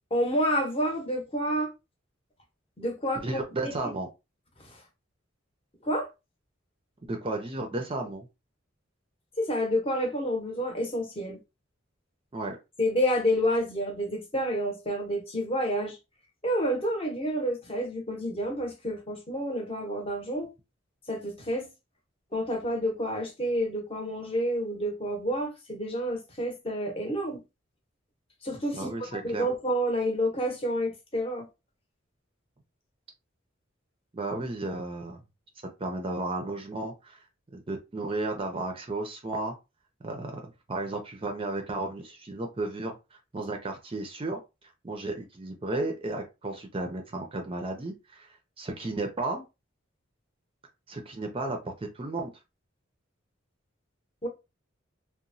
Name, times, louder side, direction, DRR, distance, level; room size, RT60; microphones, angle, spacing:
voice 1, 0.1-1.7 2.8-3.2 3.6-3.7 4.6-4.8 5.8-6.1 9.4-11.4 12.8-16.0 16.4-20.5 21.1-21.7 22.3-27.4 28.4-31.5 54.2-54.3, equal, 30° left, 0.8 m, -29 dB
voice 2, 3.1-4.1 7.0-8.3 12.3-12.6 28.7-29.5 34.1-35.2 35.8-37.2 37.5-39.6 40.0-40.4 40.7-44.4 44.8-49.4 50.9-52.3, right 2 dB, 30° right, 0.5 m, -33 dB
2.9 x 2.1 x 2.6 m
head